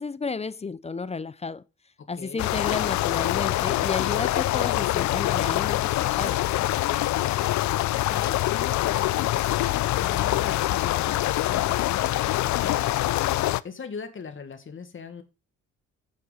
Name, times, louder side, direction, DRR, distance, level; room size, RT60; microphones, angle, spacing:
voice 1, 0.0-1.6 2.1-6.6, left 4 dB, 20° left, 0.6 m, -32 dB
sound 1, 2.4-13.6, left 15 dB, 70° left, 0.5 m, -25 dB
voice 2, 7.0-12.9 13.6-15.2, left 5 dB, 40° left, 1.7 m, -40 dB
8.7 x 6.7 x 4.9 m
cardioid pair, 90°, 30 cm